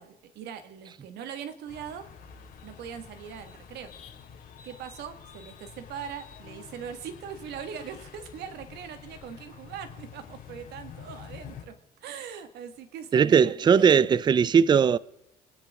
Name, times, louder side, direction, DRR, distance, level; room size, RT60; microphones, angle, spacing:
voice 1, 0.0-2.1 2.6-3.9 4.6-14.0, right 8 dB, 75° right, 1.9 m, -41 dB
sound 1, 1.7-11.6, left 7 dB, 55° left, 3.1 m, -47 dB
voice 2, 13.1-15.0, right 7 dB, 25° right, 0.4 m, -19 dB
26.0 x 10.5 x 3.7 m
cardioid pair, 110°, 17 cm